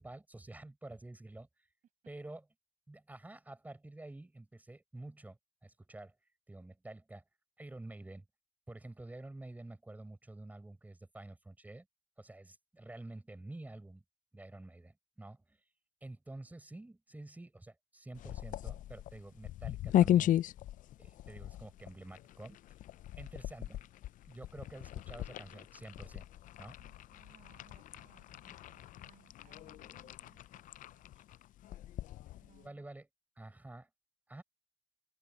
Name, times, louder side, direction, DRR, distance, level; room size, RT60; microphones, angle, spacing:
voice 1, 0.0-1.5 2.1-2.5 2.9-6.1 6.5-7.2 7.6-8.3 8.7-11.9 12.2-14.0 14.3-15.6 16.0-20.4 21.0-22.6 23.2-23.9 24.3-26.3 26.6-26.8 32.6-33.1 33.4-33.9 34.3-34.4, right 2 dB, 10° right, 7.2 m, -49 dB
sound 1, 18.1-32.7, left 12 dB, 70° left, 0.4 m, -37 dB
voice 2, 26.8-31.2 32.4-32.9, right 9 dB, 60° right, 6.5 m, -66 dB
open air
cardioid pair, 145°, 14 cm